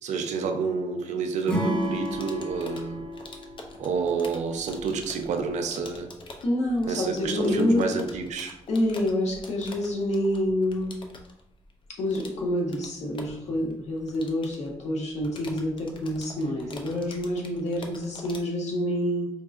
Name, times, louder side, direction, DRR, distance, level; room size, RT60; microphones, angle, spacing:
voice 1, 0.0-3.1 3.8-6.1 6.9-8.6, right 5 dB, 80° right, 5 dB, 0.5 m, -29 dB
Acoustic guitar / Strum, 1.5-4.7, equal, 10° left, 0.8 m, -32 dB
sound 1, 1.7-18.4, left 2 dB, 45° left, 0.5 m, -47 dB
voice 2, 6.4-7.8 8.7-11.0 12.0-19.3, left 1 dB, 70° left, -1 dB, 1.0 m, -27 dB
4.4 x 2.6 x 2.4 m, 0.84 s
cardioid pair, 125°, 12 cm